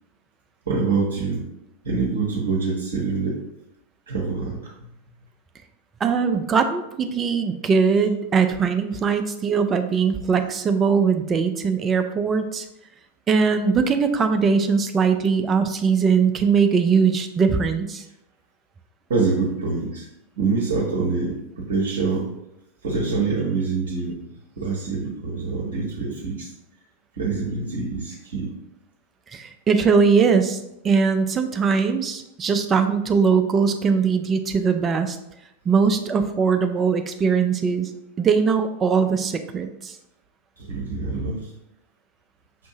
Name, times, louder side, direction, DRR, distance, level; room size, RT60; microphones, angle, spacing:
voice 1, 0.7-1.4 1.8-3.4 4.1-4.9 19.1-20.1 20.4-22.3 22.8-24.1 24.6-26.5 27.2-28.5 40.6-41.5, right 4 dB, 60° right, -3 dB, 0.8 m, -25 dB
voice 2, 6.0-12.7 13.3-18.0 29.3-30.6 30.8-35.2 35.7-37.9 38.2-40.0, right 5 dB, 20° right, 7 dB, 0.4 m, -20 dB
5.7 x 2.6 x 2.7 m, 0.86 s
figure-of-eight pair, 90°, 0 cm